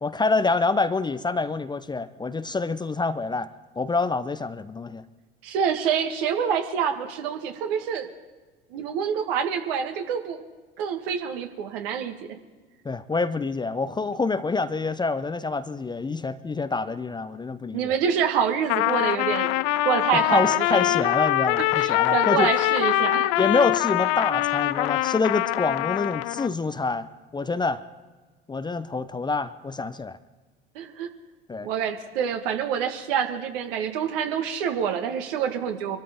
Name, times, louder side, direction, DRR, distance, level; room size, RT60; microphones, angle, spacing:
voice 1, 0.0-3.5 3.8-5.0 12.8-17.9 20.1-22.5 23.4-27.1 27.3-27.8 28.5-30.2 31.5-31.7, left 3 dB, 15° left, 12 dB, 0.6 m, -26 dB
voice 2, 5.4-8.1 8.7-10.4 10.8-12.2 17.7-20.9 21.6-23.3 30.8-31.1 31.6-36.0, right 7 dB, 65° right, 5 dB, 1.8 m, -27 dB
Trumpet, 18.6-26.5, left 17 dB, 50° left, 0.6 m, -23 dB
25.5 x 13.0 x 3.6 m, 1.3 s
figure-of-eight pair, 65°, 30 cm